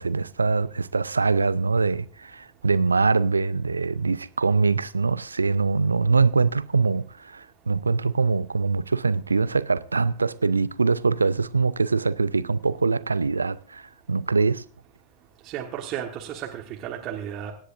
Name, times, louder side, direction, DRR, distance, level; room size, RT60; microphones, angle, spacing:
voice 1, 0.0-14.6, right 4 dB, 75° right, 0.5 m, -23 dB
voice 2, 15.4-17.5, right 10 dB, 35° right, 1.5 m, -33 dB
25.0 x 10.0 x 2.6 m
figure-of-eight pair, 90°, 0 cm